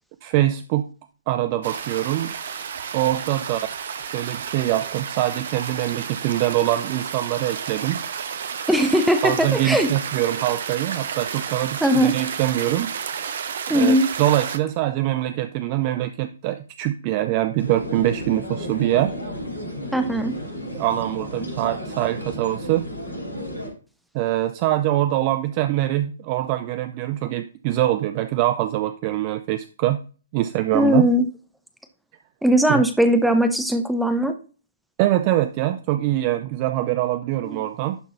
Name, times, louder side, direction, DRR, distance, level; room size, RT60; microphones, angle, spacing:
voice 1, 0.2-0.9 1.3-2.3 2.9-3.6 4.0-8.0 9.2-12.9 13.7-19.2 20.7-22.9 24.1-30.0 30.3-31.1 32.7-32.8 35.0-38.0, right 14 dB, 30° right, 11 dB, 0.4 m, -23 dB
sound 1, 1.6-14.6, right 7 dB, 50° right, 0.8 m, -31 dB
voice 2, 8.7-9.9 11.8-12.1 13.7-14.1 19.9-20.3 30.7-31.3 32.4-34.3 37.4-37.6, equal, ahead, 8 dB, 0.7 m, -19 dB
sound 2, 17.6-23.7, equal, 85° left, 3.8 m, -33 dB
11.5 x 3.9 x 4.1 m, 0.36 s
figure-of-eight pair, 120°, 0 cm